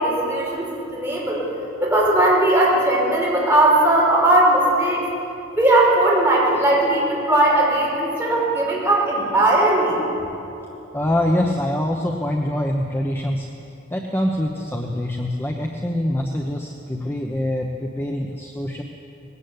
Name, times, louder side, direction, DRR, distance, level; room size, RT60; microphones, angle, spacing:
voice 1, 0.0-1.4 1.8-5.0 5.6-10.0, right 1 dB, 10° right, -5 dB, 5.7 m, -18 dB
voice 2, 10.9-13.5 13.9-18.8, left 1 dB, 10° left, 1 dB, 1.0 m, -24 dB
20.0 x 16.5 x 8.4 m, 2.8 s
head